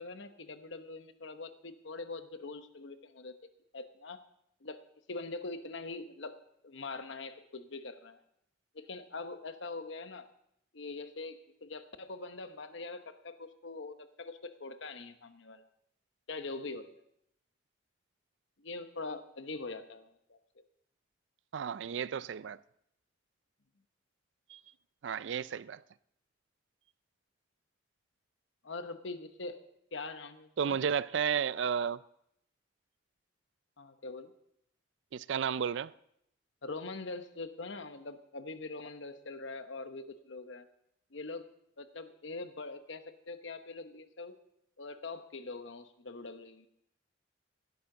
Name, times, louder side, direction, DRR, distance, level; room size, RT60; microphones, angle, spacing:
voice 1, 0.0-4.2 4.6-4.8 5.1-6.4 6.6-8.2 8.7-10.3 10.7-15.6 16.3-17.0 18.6-20.4 28.6-29.6 29.9-30.8 33.8-34.3 36.6-40.7 41.1-41.5 41.8-44.3 44.8-46.7, left 3 dB, 70° left, 1.0 m, -43 dB
voice 2, 21.5-22.6 24.5-24.6 25.0-25.8 30.6-32.0 35.1-35.9, right 7 dB, 70° right, 0.4 m, -32 dB
17.5 x 12.0 x 3.8 m
head